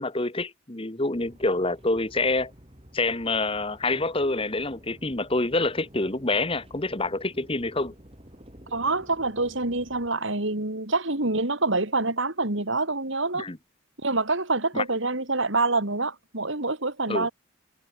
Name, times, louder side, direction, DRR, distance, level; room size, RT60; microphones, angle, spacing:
voice 1, 0.0-2.5 2.9-7.9 13.3-13.6 14.7-14.8 17.1-17.3, left 2 dB, 25° left, 1.4 m, -27 dB
sound 1, 1.1-10.1, equal, 25° right, 6.6 m, -51 dB
voice 2, 8.7-13.5 14.0-17.3, right 3 dB, 60° right, 3.0 m, -26 dB
head